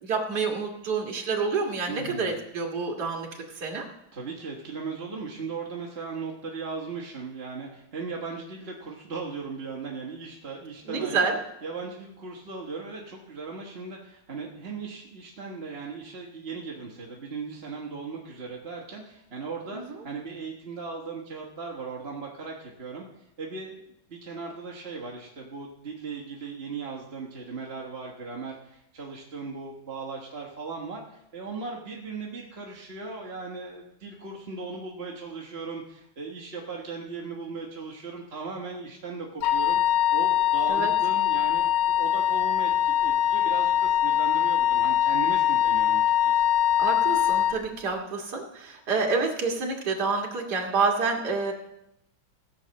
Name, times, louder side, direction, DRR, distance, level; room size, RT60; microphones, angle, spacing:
voice 1, 0.0-3.9 10.8-11.4 19.7-20.0 40.7-40.9 46.8-51.5, right 4 dB, 50° right, 0 dB, 2.4 m, -28 dB
voice 2, 1.9-2.3 4.1-11.3 11.6-23.1 23.4-23.8 24.1-46.4, right 4 dB, 35° right, -2 dB, 1.4 m, -38 dB
Wind instrument woodwind instrument, 39.4-47.6, left 11 dB, 70° left, 1.3 m, -23 dB
16.5 x 5.8 x 7.5 m, 0.83 s
omnidirectional pair, 2.3 m